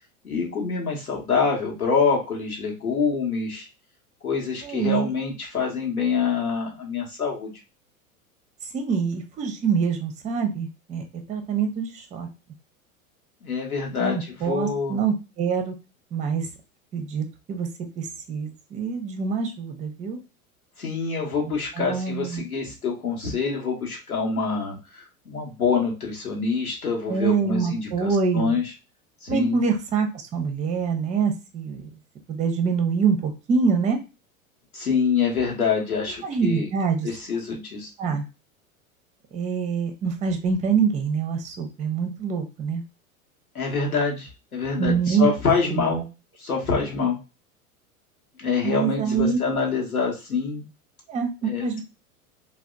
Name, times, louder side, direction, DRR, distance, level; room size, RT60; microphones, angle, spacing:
voice 1, 0.2-3.7 4.2-7.6 13.4-14.2 14.4-15.0 20.8-28.6 29.2-29.6 34.7-36.7 37.0-37.9 43.5-46.1 46.4-47.2 48.4-50.6 51.4-51.8, left 5 dB, 90° left, -1 dB, 1.0 m, -26 dB
voice 2, 4.6-5.1 8.7-12.3 14.0-15.7 16.1-16.5 16.9-17.7 18.0-20.2 21.4-22.4 27.1-28.6 29.3-31.9 32.3-34.0 36.2-37.1 38.0-38.2 39.3-42.8 44.8-45.3 45.7-45.8 48.6-49.4 51.1-51.8, right 6 dB, 15° right, 6 dB, 0.5 m, -25 dB
2.8 x 2.0 x 2.3 m, 0.29 s
figure-of-eight pair, 85°, 43 cm